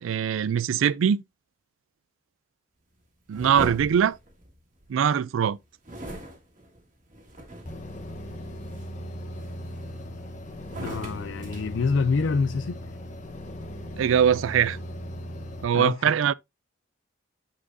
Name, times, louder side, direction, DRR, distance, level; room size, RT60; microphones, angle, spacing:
voice 1, 0.0-1.2 3.3-4.2 4.9-5.6 14.0-14.8 15.6-16.3, right 8 dB, 75° right, 0.3 m, -22 dB
Cloth Flaps, 3.3-5.0 5.8-7.9 8.4-8.8 9.4-10.2 10.6-12.5, right 1 dB, 40° right, 1.8 m, -40 dB
sound 1, 7.7-15.7, equal, 35° left, 0.9 m, -38 dB
voice 2, 10.8-12.8 15.7-16.1, left 4 dB, 65° left, 0.4 m, -26 dB
8.7 x 4.8 x 2.6 m
head